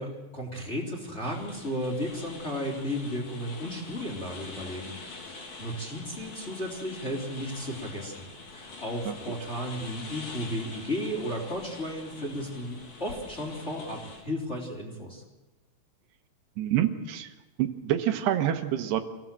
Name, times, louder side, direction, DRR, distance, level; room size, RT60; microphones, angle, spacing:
voice 1, 0.0-15.2, equal, 15° left, -1 dB, 3.4 m, -34 dB
sound 1, 1.2-14.2, left 3 dB, 55° left, 4.8 m, -45 dB
voice 2, 16.6-17.3 17.6-19.0, right 11 dB, 85° right, 7 dB, 3.3 m, -27 dB
26.0 x 17.0 x 7.6 m, 1.2 s
omnidirectional pair, 4.7 m